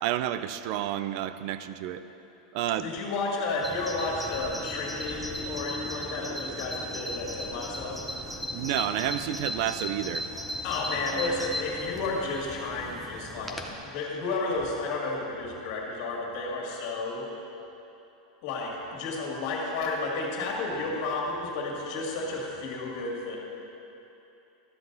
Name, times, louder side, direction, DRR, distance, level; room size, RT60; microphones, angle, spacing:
voice 1, 0.0-2.0 2.5-2.9 8.5-10.3, right 12 dB, 45° right, 12 dB, 0.4 m, -30 dB
voice 2, 2.8-8.0 10.6-17.3 18.4-23.4, left 3 dB, 50° left, -2 dB, 2.1 m, -32 dB
Bird vocalization bird call bird song, 3.6-13.7, left 1 dB, ahead, 0.6 m, -37 dB
12.5 x 7.5 x 4.0 m, 2.9 s
supercardioid pair, 160°, 4 cm